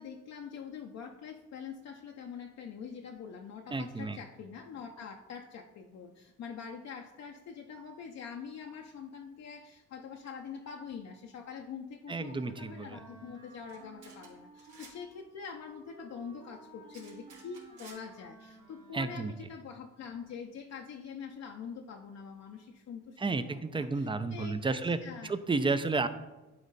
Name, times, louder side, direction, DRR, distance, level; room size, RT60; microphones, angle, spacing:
voice 1, 0.0-23.2 23.5-25.3 25.6-25.8, left 6 dB, 60° left, 2 dB, 0.7 m, -45 dB
voice 2, 3.7-4.2 12.1-13.0 18.9-19.3 23.2-25.0 25.2-26.1, right 3 dB, 15° right, 12 dB, 0.5 m, -31 dB
Wind instrument woodwind instrument, 12.5-19.6, right 2 dB, 70° right, 2.5 m, -55 dB
sound 1, 13.7-13.8 14.0-14.3 14.6-14.9 16.9-18.0, right 4 dB, 90° right, 3.0 m, -53 dB
12.0 x 4.2 x 4.1 m, 1.1 s
cardioid pair, 90°, 30 cm